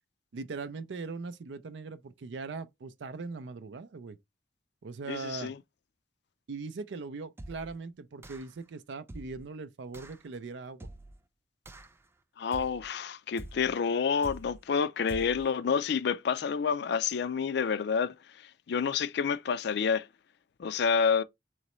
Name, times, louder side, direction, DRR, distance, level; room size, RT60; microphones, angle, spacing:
voice 1, 0.3-4.2 4.8-5.5 6.5-10.9, right 4 dB, 75° right, 0.5 m, -40 dB
voice 2, 5.1-5.5 12.4-18.1 18.7-20.1 20.6-21.2, left 6 dB, 65° left, 0.4 m, -28 dB
sound 1, 7.4-7.8 8.2-8.6 9.1-9.5 9.9-10.2 10.8-11.2 11.7-12.1 12.5-12.9 13.4-13.8 14.2-14.7 15.1-15.5, right 1 dB, 15° right, 0.3 m, -46 dB
3.9 x 3.1 x 3.0 m
head